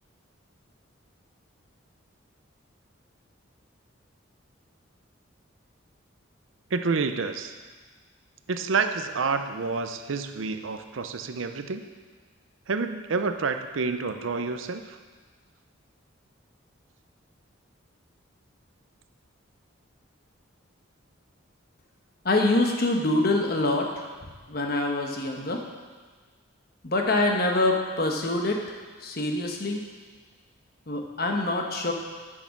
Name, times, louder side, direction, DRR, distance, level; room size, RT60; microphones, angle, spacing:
voice 1, 6.7-7.5 8.5-11.8 12.7-15.0, right 4 dB, 80° right, 8 dB, 0.6 m, -28 dB
voice 2, 22.2-24.0 24.5-25.6 26.8-28.6 29.0-29.8 30.9-31.9, left 2 dB, 50° left, 2 dB, 1.1 m, -25 dB
8.9 x 6.5 x 6.0 m, 1.4 s
head